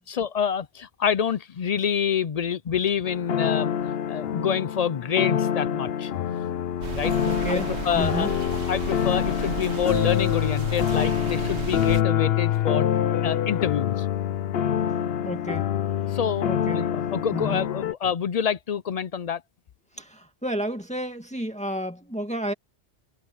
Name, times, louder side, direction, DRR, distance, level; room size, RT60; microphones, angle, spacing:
voice 1, 0.1-3.7 4.1-6.1 6.9-7.1 7.5-8.3 8.7-12.9 13.2-14.1 16.1-16.5 16.7-19.4, left 7 dB, 50° left, 0.5 m, -27 dB
sound 1, 3.0-17.9, left 9 dB, 65° left, 0.9 m, -26 dB
sound 2, 6.8-12.0, right 6 dB, 75° right, 1.4 m, -34 dB
voice 2, 7.2-8.3 15.2-15.7 16.5-16.9 17.3-17.7 20.0-22.5, equal, 5° left, 2.0 m, -31 dB
omnidirectional pair, 1.1 m